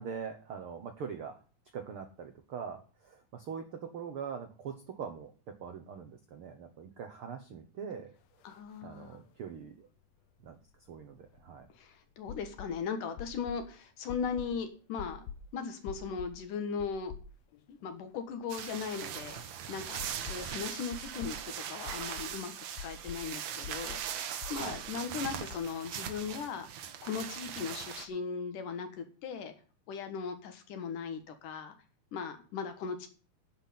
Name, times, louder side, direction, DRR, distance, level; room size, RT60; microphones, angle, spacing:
voice 1, 0.0-1.4 1.7-5.3 5.6-8.1 8.8-9.9 10.4-10.6 10.9-11.7 24.5-24.8, right 6 dB, 85° right, 6 dB, 1.2 m, -42 dB
voice 2, 8.4-9.2 11.8-15.3 15.5-17.1 17.7-19.4 19.7-22.5 22.8-24.0 24.5-26.7 27.0-29.5 29.9-31.8 32.1-33.1, left 6 dB, 65° left, 8 dB, 2.8 m, -38 dB
sound 1, 8.5-8.6 8.8-8.9 10.5-11.7 12.3-12.7 13.2-13.6 14.1-14.6 15.0-15.4 15.9-16.4 16.8-17.6 17.9-18.0 20.0-20.5 20.9-21.4 21.8-22.3 22.8-23.2 23.6-24.1 24.4-24.9 25.2-25.6, left 7 dB, 85° left, 1.5 m, -45 dB
sound 2, 18.5-28.1, right 9 dB, 65° right, 1.8 m, -40 dB
9.9 x 5.9 x 8.5 m, 0.38 s
omnidirectional pair, 4.2 m